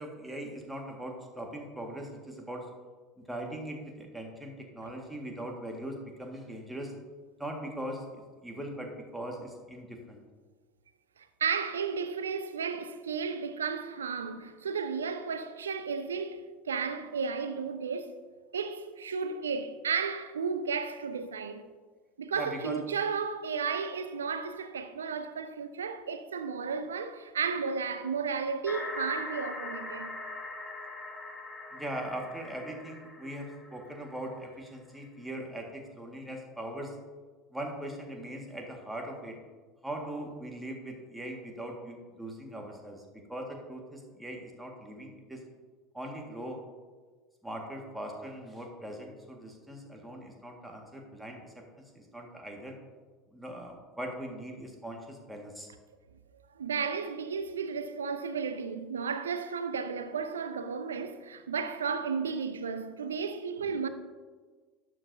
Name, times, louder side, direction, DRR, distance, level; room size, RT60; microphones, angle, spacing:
voice 1, 0.0-2.7 3.2-6.9 7.4-10.2 22.4-22.8 31.7-37.0 37.5-39.3 39.8-43.0 43.3-45.4 45.9-46.6 47.4-51.6 51.9-52.8 53.3-55.7, right 1 dB, 5° right, 1.8 m, -40 dB
voice 2, 11.4-18.2 18.5-21.7 22.2-30.1 56.6-63.9, right 5 dB, 75° right, 0.6 m, -33 dB
sound 1, 28.7-34.4, left 2 dB, 20° left, 1.4 m, -41 dB
12.0 x 9.1 x 2.8 m
figure-of-eight pair, 70°, 0 cm